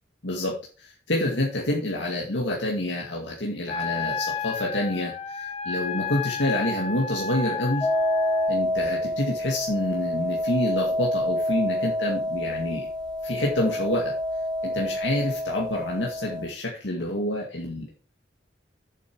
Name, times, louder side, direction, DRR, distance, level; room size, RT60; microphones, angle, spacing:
voice 1, 0.2-7.9 8.5-12.9 13.2-14.1 14.6-17.9, left 1 dB, 85° left, -1 dB, 2.3 m, -28 dB
Wind instrument woodwind instrument, 3.7-8.6, left 5 dB, 35° left, 1.0 m, -31 dB
sound 1, 7.8-16.4, left 1 dB, 5° left, 3.7 m, -28 dB
8.3 x 7.5 x 4.8 m, 0.37 s
head